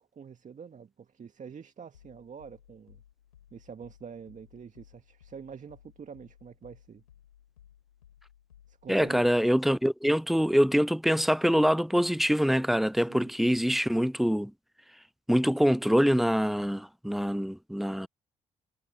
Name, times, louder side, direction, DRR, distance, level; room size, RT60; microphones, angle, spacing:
voice 1, 0.0-3.0 3.5-7.0 8.7-9.2 13.1-13.3, right 6 dB, 45° right, 2.0 m, -46 dB
sound 1, 1.9-9.4, left 10 dB, 90° left, 7.4 m, -59 dB
voice 2, 8.9-14.5 15.3-18.1, equal, ahead, 0.4 m, -25 dB
hypercardioid pair, 40°, 18 cm